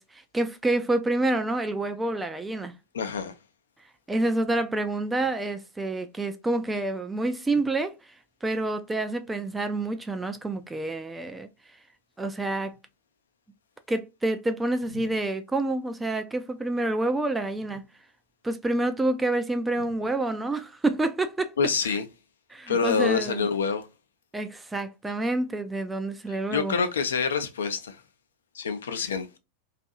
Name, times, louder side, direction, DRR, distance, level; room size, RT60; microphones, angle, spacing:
voice 1, 0.0-2.7 4.1-8.0 8.4-11.5 12.2-12.8 13.9-17.8 18.4-21.6 21.8-22.0 22.5-23.5 24.3-26.7, right 2 dB, 10° right, 0.3 m, -28 dB
voice 2, 2.9-3.3 21.6-22.0 22.7-23.9 26.5-28.0 28.5-29.3, left 6 dB, 65° left, 0.5 m, -26 dB
2.6 x 2.5 x 2.3 m
figure-of-eight pair, 90°, 0 cm